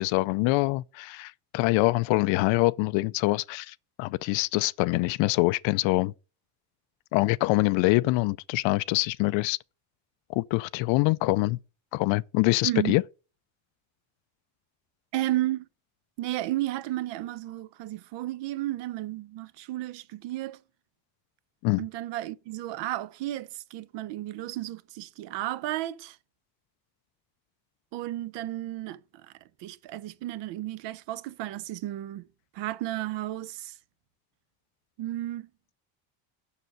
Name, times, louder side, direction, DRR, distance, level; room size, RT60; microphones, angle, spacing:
voice 1, 0.0-6.1 7.1-9.6 10.3-11.6 11.9-13.0 21.6-21.8, left 21 dB, 75° left, 0.5 m, -25 dB
voice 2, 12.6-13.0 15.1-15.7 16.2-20.6 21.8-26.2 27.9-29.0 29.6-32.2 32.5-33.7 35.0-35.5, right 15 dB, 70° right, 0.7 m, -33 dB
6.9 x 6.5 x 7.7 m
cardioid pair, 170°, 46 cm